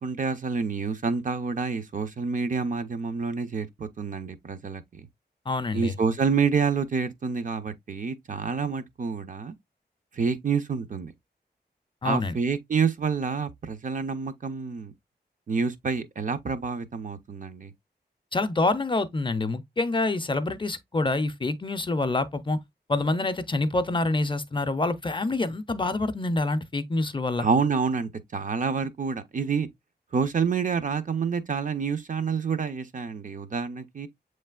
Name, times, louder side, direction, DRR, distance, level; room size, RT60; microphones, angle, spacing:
voice 1, 0.0-5.1 5.7-9.5 10.1-11.1 12.0-14.9 15.5-17.7 27.4-29.7 30.1-34.1, right 5 dB, 50° right, 0.5 m, -28 dB
voice 2, 5.5-6.0 12.0-12.4 18.3-22.6 22.9-27.5, left 2 dB, 30° left, 0.5 m, -26 dB
7.3 x 3.2 x 2.2 m
wide cardioid pair, 135°, 18 cm